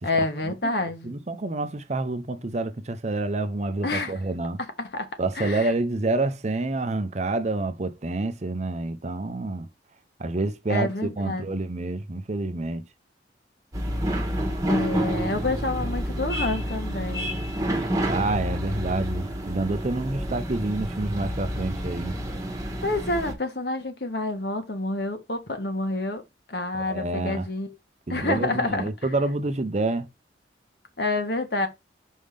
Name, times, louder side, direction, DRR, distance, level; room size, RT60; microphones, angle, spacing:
voice 1, 0.0-1.2 3.8-4.2 4.8-5.1 5.3-5.7 10.7-11.6 14.7-17.4 22.8-26.2 26.5-27.8 28.1-28.9 31.0-31.7, left 2 dB, 60° left, 1.4 m, -28 dB
voice 2, 1.0-4.6 5.2-9.7 10.2-10.9 11.2-12.9 18.0-22.1 26.7-27.4 28.1-30.1, right 2 dB, 40° right, 0.6 m, -28 dB
sound 1, 13.7-23.3, equal, 20° right, 1.3 m, -29 dB
5.4 x 3.6 x 5.0 m
head